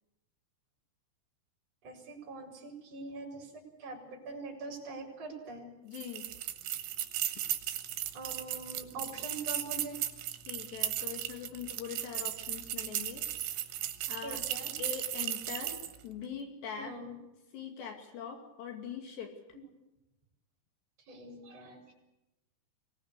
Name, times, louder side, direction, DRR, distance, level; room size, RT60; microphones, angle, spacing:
voice 1, 1.8-5.7 8.1-10.0 14.2-14.7 16.8-17.2 19.5-19.7 21.1-21.9, right 3 dB, 35° right, -1 dB, 5.4 m, -43 dB
voice 2, 5.8-6.3 10.5-13.2 13.7-13.8 14.1-14.4 14.8-15.8 16.0-17.0 17.5-19.3, left 7 dB, 70° left, 4 dB, 4.5 m, -42 dB
sound 1, 5.9-16.0, right 12 dB, 70° right, 3.4 m, -36 dB
24.5 x 18.5 x 8.2 m, 0.95 s
omnidirectional pair, 5.2 m